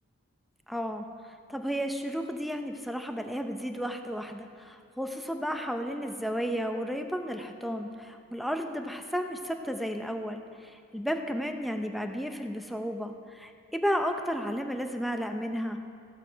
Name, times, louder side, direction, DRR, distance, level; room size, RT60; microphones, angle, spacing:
voice 1, 0.7-1.1 1.5-15.8, equal, ahead, 5 dB, 0.7 m, -33 dB
14.5 x 11.5 x 5.1 m, 2.4 s
head